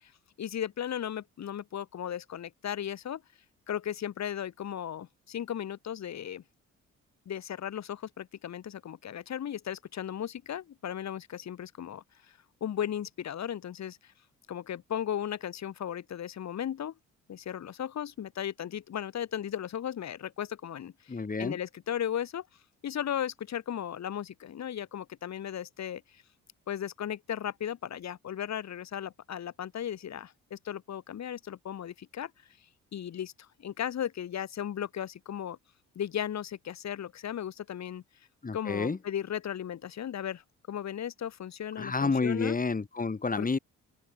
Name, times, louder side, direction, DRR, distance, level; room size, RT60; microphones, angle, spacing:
voice 1, 0.4-3.2 3.7-5.1 5.3-6.4 7.3-8.0 8.4-12.0 12.6-13.9 14.5-16.9 17.3-20.9 21.4-22.4 22.8-26.0 26.7-30.3 30.7-32.3 32.9-33.3 33.6-35.6 36.0-38.0 38.5-40.4 40.7-42.6 43.4-43.5, left 10 dB, 60° left, 5.0 m, -36 dB
voice 2, 21.1-21.6 38.4-39.0 41.8-43.6, left 4 dB, 30° left, 7.1 m, -29 dB
open air
cardioid pair, 90°, 30 cm